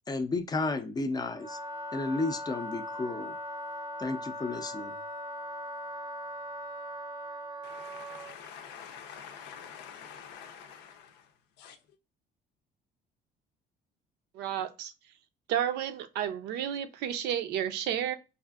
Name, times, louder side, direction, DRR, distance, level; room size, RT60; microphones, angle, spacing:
voice 1, 0.1-1.6 1.9-3.4 4.0-5.0, left 3 dB, 25° left, 0.4 m, -32 dB
Wind instrument woodwind instrument, 1.3-8.4, equal, 25° right, 0.6 m, -40 dB
voice 2, 7.6-11.8, left 7 dB, 90° left, 0.6 m, -47 dB
voice 3, 14.3-14.9 15.5-18.2, right 10 dB, 80° right, 0.5 m, -31 dB
4.8 x 2.5 x 2.3 m
cardioid pair, 110°, 17 cm